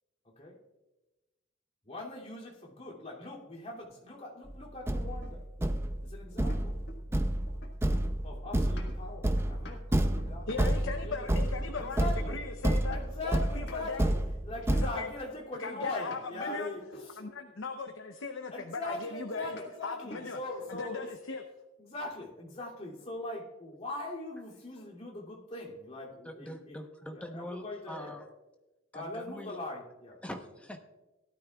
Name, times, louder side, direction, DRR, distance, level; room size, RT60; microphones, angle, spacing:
voice 1, 0.2-0.6 1.8-5.4 6.0-6.8 8.2-11.3 11.8-12.4 12.9-14.2 14.4-17.2 18.5-21.1 21.8-26.8 27.1-28.2 28.9-30.2, left 2 dB, 35° left, -4 dB, 2.8 m, -41 dB
Thump thud, 4.5-4.6 4.9-14.9, right 1 dB, 15° right, 0.6 m, -30 dB
sound 1, 5.2-7.2 7.5-13.3 13.6-14.8 15.7-17.4 19.4-19.7 20.1-20.3 20.6-21.2, left 1 dB, 60° left, 1.6 m, -50 dB
voice 2, 10.5-13.0 13.2-14.0 14.7-15.1 15.6-16.7 17.2-19.6 19.8-20.4 20.7-21.4, left 4 dB, 80° left, 4 dB, 0.8 m, -38 dB
voice 3, 26.2-28.3 28.9-29.6 30.2-30.8, equal, 5° left, 3 dB, 1.0 m, -43 dB
17.5 x 12.5 x 2.4 m, 1.1 s
head